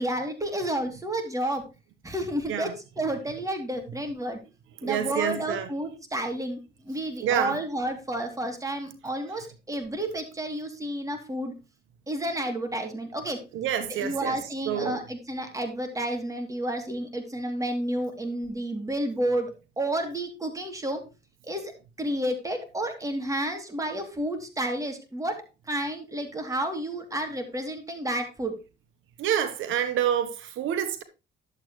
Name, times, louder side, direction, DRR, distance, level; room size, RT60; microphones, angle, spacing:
voice 1, 0.0-1.7 2.0-4.4 4.8-6.6 6.9-11.5 12.1-13.4 13.9-21.0 21.4-21.7 22.0-28.5, right 1 dB, 15° right, 2.6 m, -31 dB
voice 2, 4.8-5.7 7.2-7.6 13.5-14.4 14.6-15.0 29.2-31.0, right 9 dB, 80° right, 1.0 m, -27 dB
11.0 x 7.6 x 3.1 m
cardioid pair, 90°, 20 cm